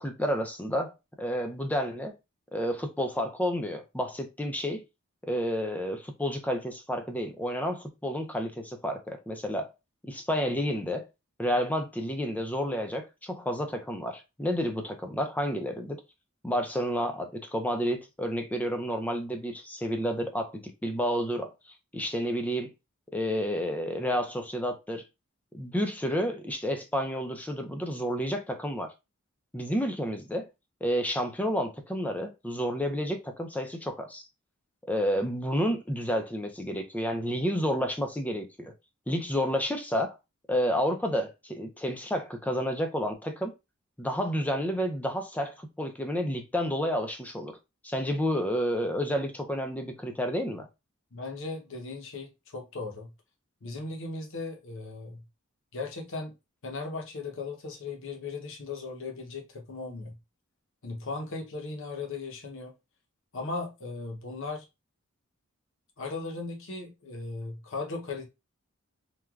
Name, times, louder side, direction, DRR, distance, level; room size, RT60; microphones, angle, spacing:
voice 1, 0.0-2.1 2.5-4.8 5.2-9.7 10.0-11.0 11.4-16.0 16.4-21.5 21.9-22.7 23.1-25.0 25.5-28.9 29.5-30.5 30.8-34.2 34.8-38.7 39.1-40.2 40.5-43.5 44.0-47.6 47.8-50.7, equal, 5° left, 0.4 m, -30 dB
voice 2, 51.1-53.1 53.6-55.2 55.7-56.3 56.6-60.2 60.8-62.7 63.3-64.7 66.0-68.3, left 3 dB, 65° left, 0.8 m, -37 dB
3.1 x 2.3 x 2.3 m
head